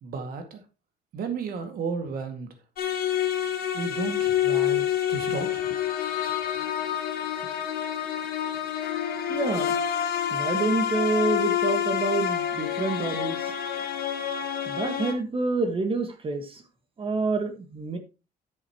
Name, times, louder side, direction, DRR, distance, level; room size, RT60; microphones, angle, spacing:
voice 1, 0.0-0.6 1.1-2.5 3.7-5.6, right 4 dB, 60° right, 6 dB, 2.1 m, -33 dB
sound 1, 2.8-15.1, left 10 dB, 60° left, 1.9 m, -28 dB
voice 2, 9.3-9.8 10.3-13.5 14.7-16.6 17.0-18.0, right 3 dB, 35° right, 7 dB, 1.5 m, -27 dB
10.0 x 8.1 x 3.0 m, 0.30 s
cardioid pair, 110°, 17 cm